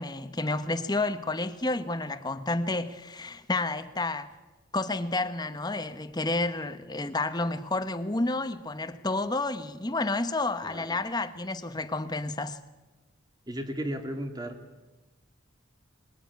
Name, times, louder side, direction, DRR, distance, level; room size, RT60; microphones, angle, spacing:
voice 1, 0.0-4.3 4.7-12.6, left 2 dB, 20° left, 1.0 m, -30 dB
voice 2, 10.6-11.0 13.5-14.6, equal, 20° right, 2.4 m, -35 dB
21.0 x 20.5 x 9.5 m
head